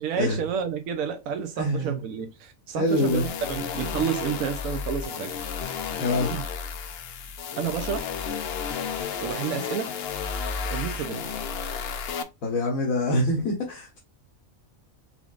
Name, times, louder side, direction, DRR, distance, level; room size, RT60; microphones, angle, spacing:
voice 1, 0.0-5.4 6.2-6.5 7.6-8.1 9.2-9.9 10.7-11.3, right 7 dB, 75° right, 1.1 m, -30 dB
voice 2, 1.6-2.0 2.8-3.2 6.0-6.3 12.4-14.0, left 1 dB, 80° left, 1.5 m, -25 dB
sound 1, 2.9-12.2, left 6 dB, 55° left, 0.7 m, -32 dB
4.9 x 3.6 x 2.4 m
omnidirectional pair, 1.4 m